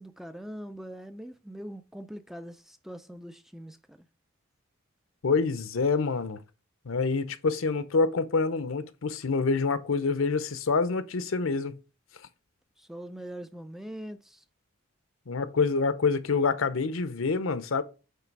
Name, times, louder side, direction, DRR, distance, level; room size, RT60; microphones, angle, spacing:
voice 1, 0.0-4.1 12.8-14.4, equal, ahead, 0.3 m, -42 dB
voice 2, 5.2-6.4 6.9-11.8 15.3-17.8, left 4 dB, 70° left, 0.7 m, -26 dB
9.2 x 3.3 x 4.6 m
head